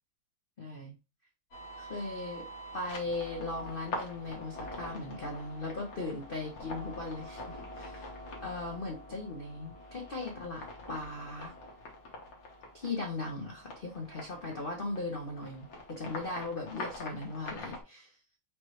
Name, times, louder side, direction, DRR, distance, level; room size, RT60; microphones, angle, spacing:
voice 1, 0.6-0.9 1.8-2.5 2.7-7.4 7.7-8.1 8.4-11.6 12.7-18.2, left 2 dB, 75° left, 0 dB, 0.4 m, -38 dB
sound 1, 1.5-17.8, left 1 dB, 50° left, 1.5 m, -45 dB
5.1 x 3.1 x 3.1 m, 0.30 s
omnidirectional pair, 2.3 m